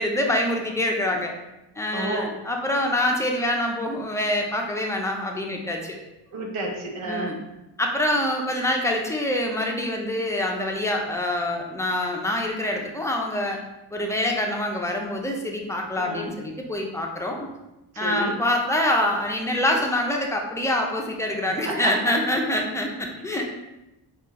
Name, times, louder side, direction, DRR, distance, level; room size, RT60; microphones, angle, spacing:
voice 1, 0.0-1.3 1.8-6.0 7.1-7.4 7.8-13.6 13.9-17.5 18.0-23.5, left 1 dB, 5° left, 1 dB, 0.4 m, -25 dB
voice 2, 1.9-2.3 6.3-7.4 16.0-16.4 17.9-18.4 21.5-22.1 23.3-23.5, right 2 dB, 85° right, 0 dB, 1.0 m, -31 dB
4.3 x 2.4 x 4.1 m, 0.97 s
wide cardioid pair, 130°, 47 cm